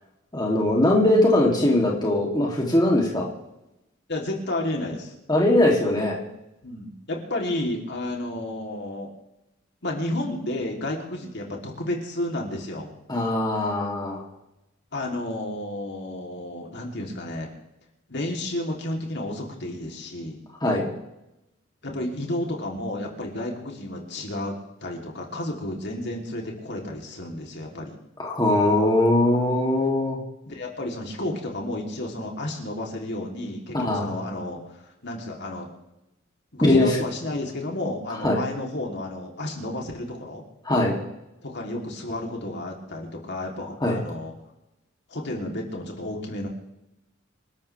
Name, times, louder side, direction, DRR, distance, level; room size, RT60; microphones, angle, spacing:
voice 1, 0.3-3.3 5.3-6.2 13.1-14.2 20.6-20.9 28.2-30.2 33.7-34.1 36.6-36.9 38.2-38.4 40.6-40.9 43.8-44.0, left 1 dB, 20° left, -2 dB, 2.9 m, -21 dB
voice 2, 4.1-5.1 6.6-9.1 9.8-12.9 14.9-17.5 18.1-20.4 21.8-24.5 24.8-28.0 30.4-35.7 36.5-40.4 41.4-44.3 45.1-46.5, left 1 dB, 55° left, 0 dB, 3.3 m, -31 dB
27.5 x 13.0 x 3.5 m, 0.91 s
head